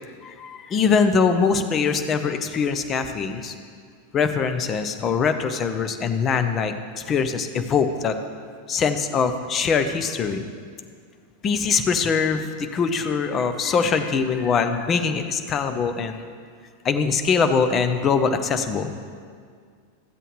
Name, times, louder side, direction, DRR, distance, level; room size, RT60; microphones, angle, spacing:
voice 1, 0.2-3.5 4.1-8.2 8.7-10.4 11.4-16.2 16.8-18.9, left 5 dB, 25° left, 7 dB, 0.7 m, -23 dB
14.0 x 7.8 x 3.2 m, 2.1 s
figure-of-eight pair, 90°, 0 cm